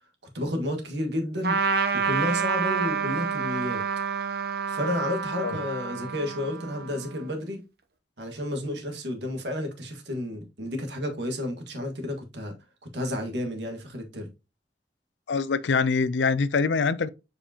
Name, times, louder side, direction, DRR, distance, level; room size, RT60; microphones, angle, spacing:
voice 1, 0.3-1.6 1.9-3.8 4.7-7.6 8.2-12.5 12.9-14.3, left 1 dB, 80° right, 1.7 m, -31 dB
Trumpet, 1.4-7.3, right 5 dB, 60° right, 0.8 m, -28 dB
voice 2, 15.3-17.1, left 4 dB, 85° left, 0.5 m, -24 dB
7.3 x 5.1 x 2.9 m
head